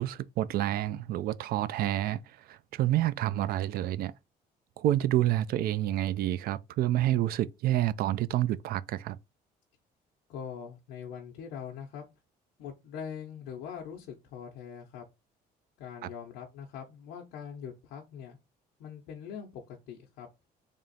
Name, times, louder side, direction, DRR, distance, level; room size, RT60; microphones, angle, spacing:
voice 1, 0.0-4.1 4.8-9.2 16.0-16.1, right 13 dB, 65° right, 0.4 m, -28 dB
voice 2, 10.3-12.0 12.6-15.0 15.8-18.4 18.8-20.3, left 7 dB, 90° left, 0.8 m, -42 dB
3.5 x 2.5 x 4.0 m
cardioid pair, 110°, 17 cm